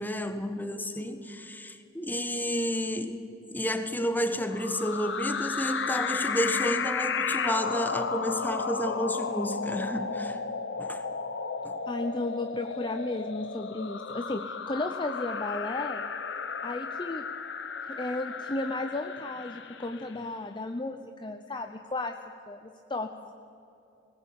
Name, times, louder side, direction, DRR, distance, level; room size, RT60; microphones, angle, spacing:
voice 1, 0.0-3.2 3.5-10.4 10.8-11.0 11.6-11.8, equal, 10° left, 8 dB, 1.3 m, -31 dB
sound 1, 4.5-20.2, left 5 dB, 70° left, 1.0 m, -33 dB
voice 2, 11.9-16.0 16.6-17.3 17.9-22.2 22.5-23.3, left 2 dB, 25° left, 6 dB, 0.7 m, -34 dB
19.5 x 19.0 x 8.8 m, 2.7 s
head